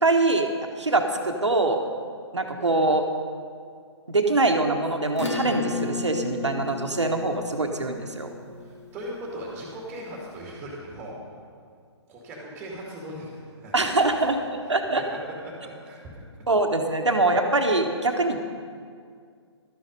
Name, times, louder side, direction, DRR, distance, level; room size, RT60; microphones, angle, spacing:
voice 1, 0.0-0.5 0.8-1.8 2.3-3.0 4.1-8.3 13.7-15.0 16.5-18.4, right 2 dB, 80° right, 4 dB, 1.2 m, -23 dB
Acoustic guitar / Strum, 5.1-10.1, left 4 dB, 80° left, 2.3 m, -34 dB
voice 2, 8.6-11.2 12.1-14.0 14.9-15.0 15.4-16.4, right 1 dB, 10° right, -3 dB, 2.3 m, -39 dB
12.0 x 10.0 x 5.2 m, 2.2 s
figure-of-eight pair, 130°, 15 cm